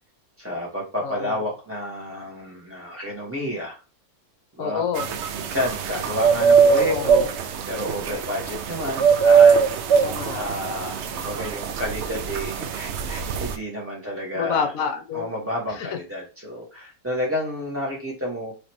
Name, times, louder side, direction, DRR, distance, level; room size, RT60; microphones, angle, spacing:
voice 1, 0.4-3.8 4.6-4.8 5.3-7.3 7.7-9.6 10.3-14.7 15.1-18.5, left 1 dB, 10° right, -4 dB, 1.5 m, -30 dB
voice 2, 1.0-1.4 4.6-5.2 6.7-7.1 10.0-10.4 14.3-15.3 15.7-16.0, left 6 dB, 70° left, 6 dB, 1.0 m, -28 dB
sound 1, 5.0-13.6, right 6 dB, 65° right, 0.7 m, -21 dB
3.9 x 3.3 x 3.1 m, 0.32 s
omnidirectional pair, 1.6 m